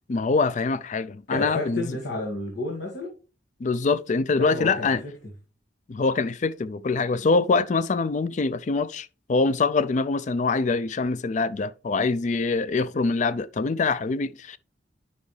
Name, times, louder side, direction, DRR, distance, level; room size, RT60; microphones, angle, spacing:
voice 1, 0.1-2.0 3.6-5.0 5.9-14.6, left 4 dB, 40° left, 0.4 m, -24 dB
voice 2, 1.3-3.1 4.4-4.9, left 2 dB, 80° left, 2.0 m, -30 dB
9.5 x 5.7 x 3.2 m
head